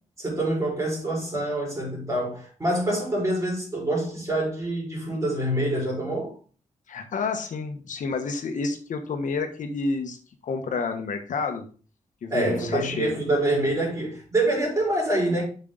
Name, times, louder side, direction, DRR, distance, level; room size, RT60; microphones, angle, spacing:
voice 1, 0.2-6.3 12.3-15.4, right 1 dB, 25° right, 4.4 m, -26 dB
voice 2, 6.9-10.2 10.4-11.6 12.2-13.1, left 4 dB, 80° left, 1.3 m, -29 dB
7.6 x 5.6 x 3.8 m
wide cardioid pair, 130°, 13 cm